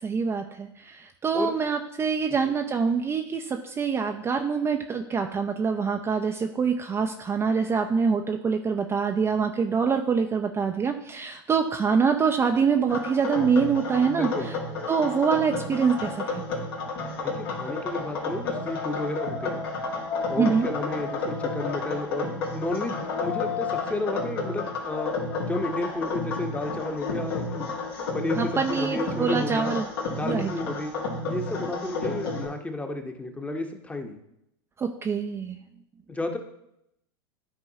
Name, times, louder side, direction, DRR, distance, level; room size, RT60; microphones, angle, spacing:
voice 1, 0.0-14.5 14.9-16.4 20.4-20.7 28.4-29.9 30.2-30.5 34.8-35.6, right 5 dB, 20° right, 4 dB, 0.5 m, -25 dB
sound 1, 12.9-32.5, left 3 dB, 75° left, 2.0 m, -31 dB
voice 2, 14.2-14.5 17.2-19.6 20.3-25.1 25.5-27.7 28.1-29.8 30.1-30.9 31.2-34.2 36.1-36.4, left 2 dB, 10° left, 5 dB, 1.0 m, -32 dB
12.5 x 4.5 x 2.8 m, 0.80 s
hypercardioid pair, 95°, 13 cm